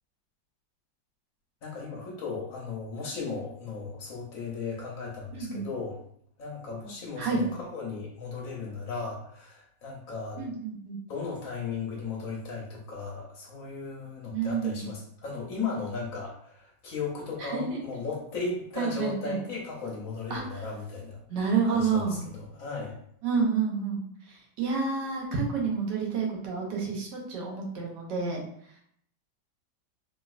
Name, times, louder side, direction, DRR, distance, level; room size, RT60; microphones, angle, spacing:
voice 1, 1.6-6.0 6.4-10.5 11.1-21.2 21.6-23.0, left 4 dB, 55° left, -3 dB, 1.0 m, -36 dB
voice 2, 5.3-5.7 7.2-7.4 10.4-11.0 14.3-14.8 17.4-17.8 18.8-19.4 20.3-20.6 21.3-22.2 23.2-28.4, right 5 dB, 70° right, -2 dB, 1.4 m, -29 dB
3.1 x 3.0 x 2.4 m, 0.66 s
omnidirectional pair, 2.1 m